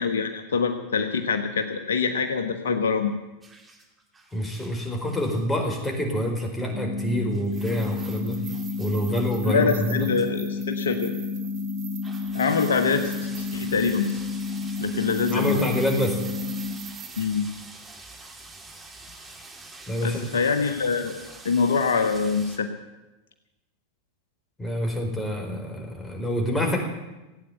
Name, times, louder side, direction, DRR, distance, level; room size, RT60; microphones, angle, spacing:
voice 1, 0.0-3.1 9.4-11.1 12.3-14.2 14.8-15.6 17.2-17.5 20.0-21.2 21.4-22.7, left 5 dB, 75° left, 5 dB, 1.4 m, -25 dB
sound 1, 3.4-5.6 7.3-9.4 9.9-10.3 10.6-10.7 11.4-11.5 12.0-22.6, right 2 dB, 15° right, 2.8 m, -46 dB
voice 2, 4.3-8.4 8.8-10.1 15.3-16.2 19.9-20.2 24.6-26.8, equal, 10° left, 1 dB, 4.6 m, -27 dB
sound 2, 6.7-16.7, left 4 dB, 30° left, 5.9 m, -31 dB
sound 3, 7.4-17.3, right 11 dB, 50° right, 2.3 m, -44 dB
16.5 x 9.3 x 9.2 m, 1.1 s
hypercardioid pair, 90°, 0 cm